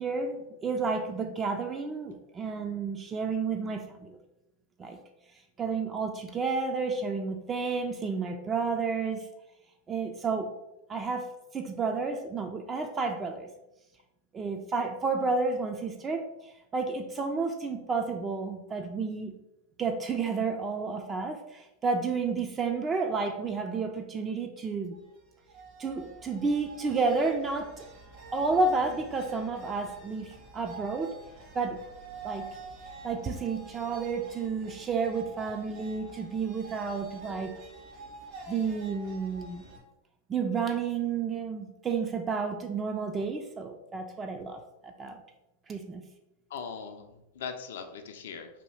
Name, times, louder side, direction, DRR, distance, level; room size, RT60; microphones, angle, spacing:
voice 1, 0.0-4.2 4.8-5.0 5.6-9.3 9.9-10.5 10.9-11.3 11.5-13.5 14.3-19.3 19.8-24.9 25.8-27.9 28.3-31.1 31.5-31.8 32.2-32.5 33.0-37.5 38.5-39.6 40.3-45.2 45.7-46.0, right 4 dB, 25° right, 5 dB, 0.3 m, -31 dB
sound 1, 24.9-39.8, right 3 dB, 55° right, 1.0 m, -47 dB
voice 2, 46.5-48.5, left 6 dB, 70° left, 7 dB, 0.4 m, -40 dB
2.7 x 2.3 x 3.2 m, 0.89 s
hypercardioid pair, 95°, 0 cm